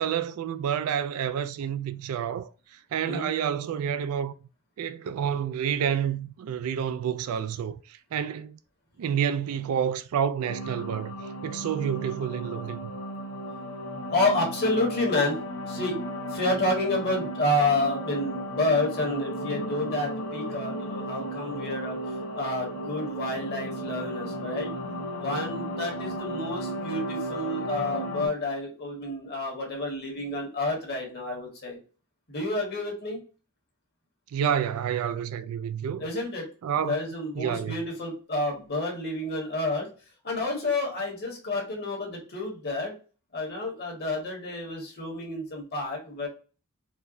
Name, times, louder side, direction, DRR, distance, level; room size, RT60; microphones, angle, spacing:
voice 1, 0.0-2.5 2.9-4.3 4.8-8.6 9.0-11.1 11.4-12.9 34.3-36.1 36.6-37.0 37.4-37.8, right 8 dB, 75° right, 0.3 m, -29 dB
sound 1, 10.5-28.3, equal, 75° left, 0.8 m, -34 dB
voice 2, 14.1-15.4 15.7-16.0 16.3-22.0 22.3-24.7 25.2-31.8 32.3-33.2 36.0-36.5 36.8-39.9 40.2-42.9 43.3-46.3, left 2 dB, 45° left, 1.3 m, -29 dB
4.3 x 2.2 x 2.5 m
head